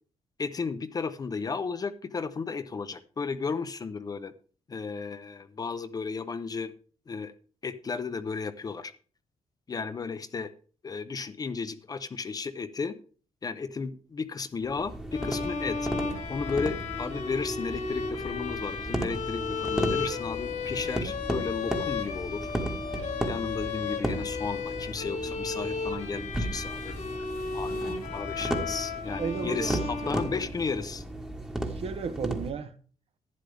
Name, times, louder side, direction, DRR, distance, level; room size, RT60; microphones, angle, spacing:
voice 1, 0.4-4.3 4.7-6.7 7.1-7.3 7.6-8.9 9.7-10.5 10.8-13.0 13.4-15.9 16.3-22.5 23.3-27.0 27.5-31.0, left 5 dB, 30° left, 0.6 m, -34 dB
sound 1, 14.6-32.5, right 1 dB, 5° right, 1.3 m, -35 dB
sound 2, 15.1-30.8, left 5 dB, 75° left, 2.3 m, -35 dB
voice 2, 29.2-30.2 31.5-32.7, right 5 dB, 55° right, 1.0 m, -34 dB
11.5 x 9.8 x 3.4 m
wide cardioid pair, 140°, 12 cm